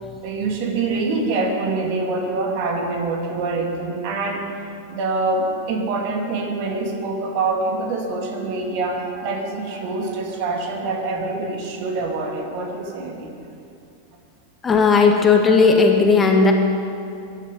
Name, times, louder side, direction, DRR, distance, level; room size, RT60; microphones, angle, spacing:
voice 1, 0.2-4.6 4.9-13.3, right 3 dB, 45° right, 2 dB, 2.8 m, -25 dB
voice 2, 14.6-16.5, left 4 dB, 15° left, 2 dB, 1.9 m, -15 dB
22.0 x 11.5 x 5.5 m, 2.5 s
figure-of-eight pair, 90°, 0 cm